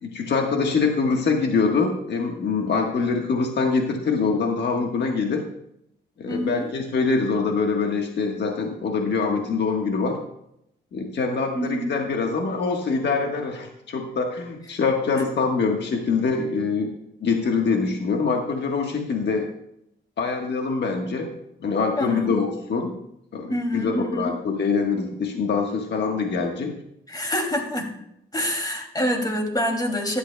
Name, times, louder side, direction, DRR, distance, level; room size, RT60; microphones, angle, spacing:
voice 1, 0.0-5.4 6.2-10.2 10.9-16.9 17.2-19.5 20.2-21.3 21.6-22.9 23.3-26.7, left 4 dB, 60° left, 2 dB, 1.4 m, -24 dB
voice 2, 6.3-6.7 11.5-11.9 22.0-22.3 23.5-24.3 27.1-27.9 28.3-30.2, equal, 20° left, 2 dB, 2.6 m, -26 dB
15.0 x 11.0 x 2.3 m, 0.78 s
cardioid pair, 95°, 20 cm